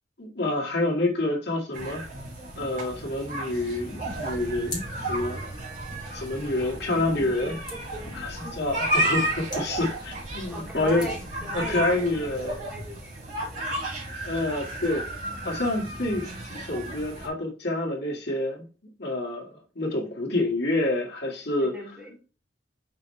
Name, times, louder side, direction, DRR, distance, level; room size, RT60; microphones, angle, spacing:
voice 1, 0.2-2.0 2.6-5.4 6.1-7.6 8.1-11.1 11.5-12.7 14.2-15.2 15.4-18.7 19.0-21.8, left 2 dB, 60° left, 2.0 m, -28 dB
sound 1, 1.7-17.3, right 1 dB, 45° right, 3.3 m, -33 dB
sound 2, 4.0-12.6, left 2 dB, 25° left, 2.3 m, -44 dB
voice 2, 6.6-8.5 10.5-13.6 21.6-22.1, left 1 dB, 10° right, 2.5 m, -41 dB
6.1 x 5.2 x 3.3 m
head